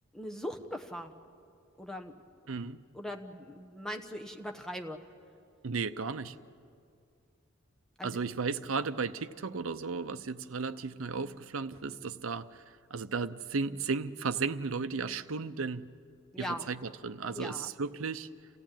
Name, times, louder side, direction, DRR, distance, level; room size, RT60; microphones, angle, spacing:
voice 1, 0.1-1.1 1.8-2.5 2.9-5.0 8.0-8.2 16.3-16.7 17.3-17.7, equal, 5° left, 1.1 m, -40 dB
voice 2, 2.5-2.8 5.6-6.4 8.0-15.9 16.4-18.3, right 4 dB, 85° right, 0.7 m, -35 dB
28.5 x 15.0 x 9.0 m
head